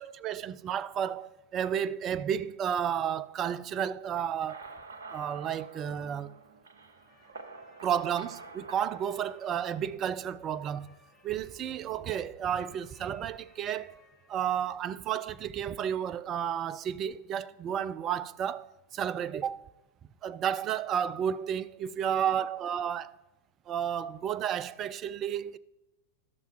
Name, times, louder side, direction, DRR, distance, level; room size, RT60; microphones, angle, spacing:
voice 1, 0.0-4.6 5.1-6.4 7.8-10.9 11.2-14.0 14.3-19.7 20.2-23.1 23.7-25.6, right 9 dB, 30° right, 0.3 m, -32 dB
sound 1, 4.3-10.1, right 4 dB, 65° right, 0.8 m, -48 dB
sound 2, 6.8-14.7, left 2 dB, 25° left, 2.5 m, -59 dB
13.0 x 6.6 x 3.1 m
figure-of-eight pair, 90°, 0 cm